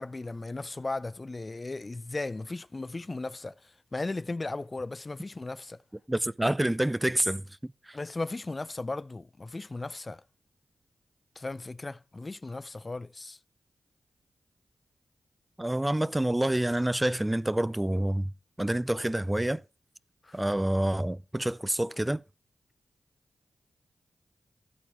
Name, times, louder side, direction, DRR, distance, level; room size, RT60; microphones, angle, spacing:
voice 1, 0.0-5.8 7.9-10.2 11.4-13.4 20.2-20.4, left 2 dB, 35° left, 0.5 m, -36 dB
voice 2, 6.1-8.0 15.6-18.3 18.6-19.6 20.3-22.2, right 1 dB, 15° right, 0.6 m, -28 dB
13.5 x 8.6 x 3.1 m
cardioid pair, 45°, 0 cm